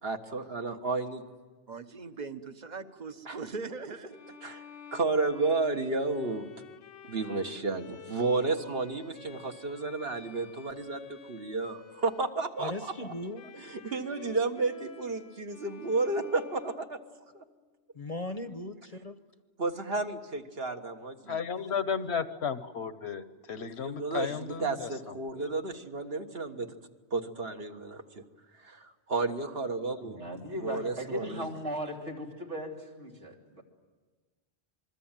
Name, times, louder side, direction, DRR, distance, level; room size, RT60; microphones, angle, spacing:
voice 1, 0.0-1.2 3.3-3.4 4.4-4.6 4.9-6.5 7.0-12.9 13.6-17.0 17.3-17.4 19.6-21.4 23.8-26.7 27.1-28.2 28.6-30.2 30.5-31.5, right 3 dB, 60° right, 5 dB, 1.7 m, -32 dB
voice 2, 1.7-4.4, right 4 dB, 40° right, 10 dB, 1.2 m, -40 dB
Bowed string instrument, 4.1-17.6, left 6 dB, 85° left, 1.3 m, -51 dB
voice 3, 12.6-13.6 17.9-19.2, left 2 dB, 35° left, 10 dB, 0.9 m, -38 dB
voice 4, 21.3-25.5, left 6 dB, 70° left, 12 dB, 1.3 m, -34 dB
voice 5, 30.0-33.6, equal, 85° right, 0 dB, 3.5 m, -38 dB
27.5 x 21.5 x 9.0 m, 1.3 s
omnidirectional pair, 1.2 m